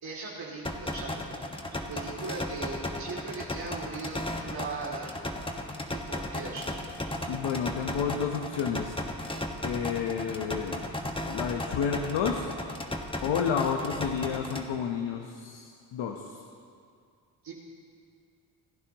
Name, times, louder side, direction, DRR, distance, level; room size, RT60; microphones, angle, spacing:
voice 1, 0.0-1.4 1.7-5.1 5.9-6.8 17.4-17.5, right 3 dB, 50° right, -5 dB, 2.9 m, -39 dB
sound 1, 0.6-14.6, left 1 dB, 10° left, 1.5 m, -35 dB
voice 2, 7.3-9.0 9.6-10.9 11.3-12.5 13.2-16.4, left 7 dB, 70° left, 3 dB, 1.2 m, -30 dB
27.5 x 11.5 x 3.1 m, 2.3 s
supercardioid pair, 60°, 47 cm